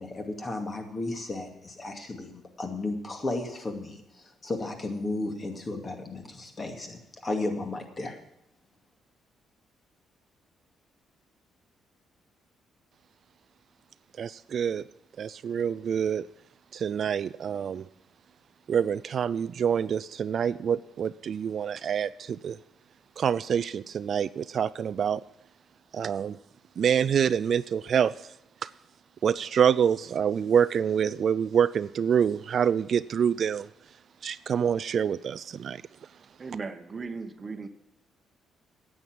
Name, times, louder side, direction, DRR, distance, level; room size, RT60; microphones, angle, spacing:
voice 1, 0.0-8.2, left 2 dB, 35° left, 4 dB, 2.4 m, -34 dB
voice 2, 14.2-14.8 15.2-16.3 16.7-17.9 18.7-22.6 23.2-25.2 25.9-26.4 26.8-28.1 29.2-33.7 34.2-35.8, right 8 dB, 55° right, 16 dB, 0.4 m, -26 dB
voice 3, 36.4-37.7, right 4 dB, 35° right, 8 dB, 1.0 m, -37 dB
9.9 x 8.7 x 9.2 m, 0.80 s
cardioid pair, 90°, 0 cm